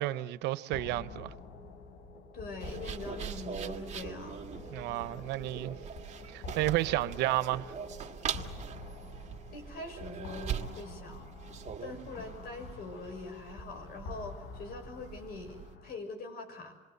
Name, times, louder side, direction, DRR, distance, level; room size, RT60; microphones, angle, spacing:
voice 1, 0.0-1.3 4.7-5.8 6.3-7.8, right 16 dB, 90° right, 0.9 m, -32 dB
sound 1, 0.7-16.0, left 2 dB, 80° left, 5.4 m, -47 dB
voice 2, 2.3-4.4 5.0-5.1 9.5-11.3 11.8-16.7, left 3 dB, 65° left, 6.4 m, -43 dB
sound 2, 2.6-15.7, right 8 dB, 40° right, 2.0 m, -42 dB
27.5 x 22.5 x 7.9 m
cardioid pair, 110°, 17 cm